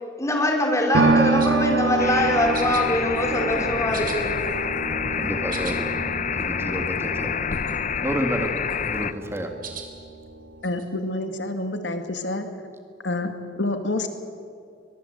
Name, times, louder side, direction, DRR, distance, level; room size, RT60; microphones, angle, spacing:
voice 1, 0.2-4.3, left 1 dB, 15° left, 2 dB, 4.2 m, -23 dB
sound 1, 0.9-9.1 9.5-9.6, right 3 dB, 70° right, 1.7 m, -27 dB
sound 2, 1.4-1.7 2.5-2.9 3.2-3.6 3.9-4.9 5.3-5.8 6.1-6.2 6.4-6.5 6.9-7.2 7.5-8.0 8.4-9.0 9.6-9.9 10.6-10.8, right 7 dB, 50° right, 3.6 m, -40 dB
sound 3, 2.0-9.1, left 7 dB, 45° left, 0.7 m, -28 dB
voice 2, 5.2-5.9 6.3-7.3 8.0-8.5 8.8-9.5, equal, 15° right, 5 dB, 1.9 m, -29 dB
voice 3, 10.6-12.5 13.0-14.1, left 2 dB, 80° left, 7 dB, 2.2 m, -28 dB
23.0 x 22.0 x 8.0 m, 2.3 s
head